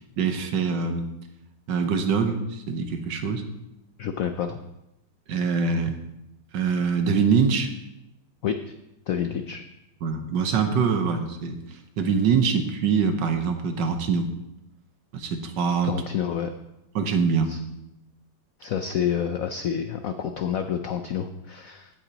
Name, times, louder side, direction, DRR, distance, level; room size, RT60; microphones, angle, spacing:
voice 1, 0.2-1.1 1.7-3.4 5.3-6.0 6.5-7.7 10.0-11.6 12.0-14.3 15.1-15.9 16.9-17.6, right 5 dB, 70° right, 6 dB, 1.5 m, -24 dB
voice 2, 4.0-4.6 8.4-8.7 9.1-9.6 15.8-16.5 17.5-17.6 18.6-21.9, left 8 dB, 80° left, 7 dB, 0.7 m, -28 dB
16.5 x 8.0 x 2.9 m, 0.89 s
omnidirectional pair, 2.1 m